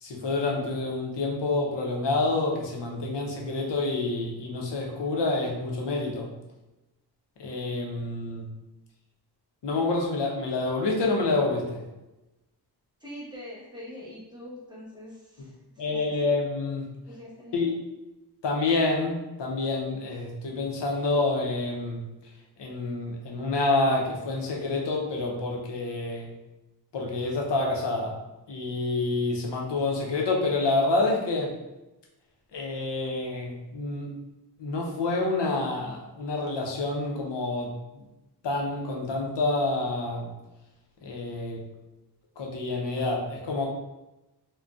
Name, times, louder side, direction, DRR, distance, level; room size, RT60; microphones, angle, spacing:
voice 1, 0.0-6.3 7.4-8.5 9.6-11.8 15.8-16.9 17.5-17.8 18.4-22.0 22.6-26.3 26.9-28.2 28.5-31.5 32.5-34.1 34.6-38.0 38.4-40.3 41.0-41.6 42.4-43.7, left 2 dB, 80° left, -1 dB, 0.7 m, -28 dB
voice 2, 13.0-16.3 17.1-17.7, left 1 dB, 10° right, -6 dB, 0.8 m, -44 dB
3.8 x 2.3 x 2.3 m, 0.99 s
wide cardioid pair, 145°, 41 cm